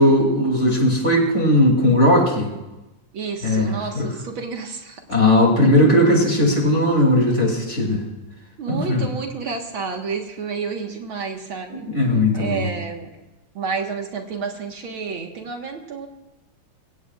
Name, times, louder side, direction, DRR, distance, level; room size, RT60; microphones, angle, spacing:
voice 1, 0.0-2.5 3.4-3.7 3.9-4.1 5.1-8.0 8.7-9.1 11.8-12.7, left 1 dB, 30° left, 0 dB, 3.2 m, -17 dB
voice 2, 3.1-5.0 8.6-11.9 12.3-13.1 13.6-16.1, right 5 dB, 65° right, 3 dB, 2.3 m, -30 dB
25.0 x 16.5 x 2.5 m, 1.0 s
omnidirectional pair, 2.4 m